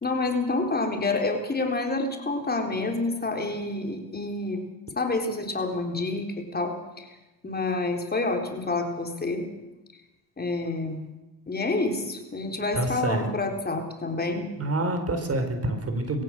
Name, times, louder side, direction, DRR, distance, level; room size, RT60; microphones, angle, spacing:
voice 1, 0.0-4.6 5.0-7.1 7.4-9.4 10.4-11.0 11.5-14.5, left 3 dB, 25° left, 3 dB, 3.9 m, -28 dB
voice 2, 12.7-13.3 14.6-16.2, right 2 dB, 35° right, 7 dB, 4.4 m, -27 dB
21.0 x 16.5 x 7.6 m, 1.0 s
cardioid pair, 90°, 41 cm